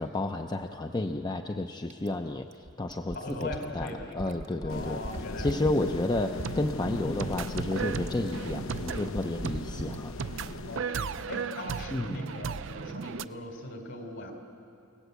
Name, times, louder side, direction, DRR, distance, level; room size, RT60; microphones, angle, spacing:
voice 1, 0.0-3.5 3.8-5.0 5.4-10.2 11.9-12.2, left 2 dB, 20° left, 5 dB, 0.5 m, -31 dB
Fill (with liquid), 1.9-10.0 11.3-11.4, right 1 dB, 35° right, 0.8 m, -41 dB
voice 2, 3.1-5.9 6.8-7.2 10.7-14.3, left 1 dB, 60° left, 4 dB, 3.6 m, -40 dB
sound 1, 4.7-10.8, left 3 dB, 75° left, 0.8 m, -39 dB
sound 2, 6.1-13.2, right 6 dB, 60° right, 0.5 m, -36 dB
29.5 x 18.0 x 8.2 m, 2.7 s
head